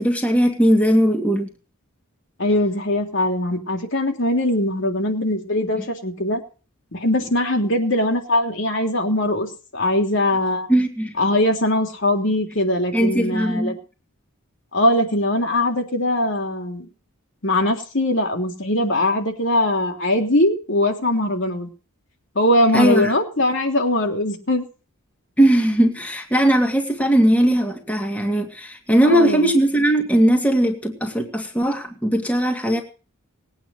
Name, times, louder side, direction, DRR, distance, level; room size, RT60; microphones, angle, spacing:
voice 1, 0.0-1.5 10.7-11.1 12.9-13.8 22.7-23.1 25.4-32.8, right 1 dB, 5° left, 2 dB, 2.3 m, -19 dB
voice 2, 2.4-6.4 6.9-9.5 9.7-10.7 11.2-13.7 14.7-16.9 17.4-21.7 22.3-24.6 29.0-29.5, left 1 dB, 55° left, 3 dB, 3.2 m, -21 dB
20.5 x 9.2 x 6.5 m, 0.36 s
head